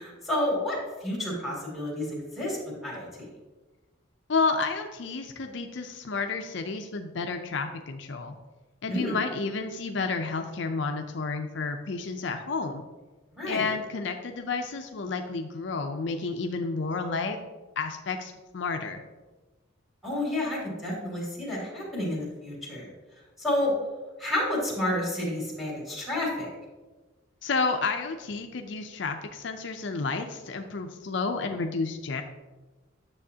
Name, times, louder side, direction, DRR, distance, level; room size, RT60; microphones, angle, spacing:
voice 1, 0.0-3.1 8.9-9.2 13.4-13.7 20.0-22.9 23.4-23.7 24.2-26.5, left 1 dB, ahead, -6 dB, 2.6 m, -30 dB
voice 2, 4.3-8.3 8.8-12.8 13.5-17.4 17.8-19.0 27.4-32.2, left 4 dB, 60° left, 5 dB, 0.5 m, -31 dB
9.8 x 6.9 x 2.8 m, 1.2 s
head